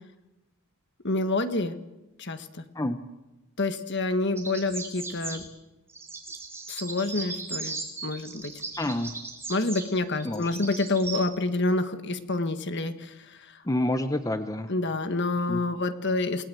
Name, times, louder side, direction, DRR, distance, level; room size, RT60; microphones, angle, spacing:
voice 1, 1.0-1.7 2.2-2.6 3.6-5.5 6.7-7.8 8.0-8.5 9.5-13.1 14.7-16.5, left 2 dB, 50° left, 9 dB, 1.6 m, -28 dB
sound 1, 4.4-5.4 5.9-11.2, right 4 dB, 10° right, 3.7 m, -38 dB
voice 2, 8.8-9.1 10.2-10.5 13.7-14.7 15.5-15.6, left 1 dB, 15° left, 9 dB, 0.9 m, -28 dB
28.5 x 19.0 x 7.8 m, 1.0 s
head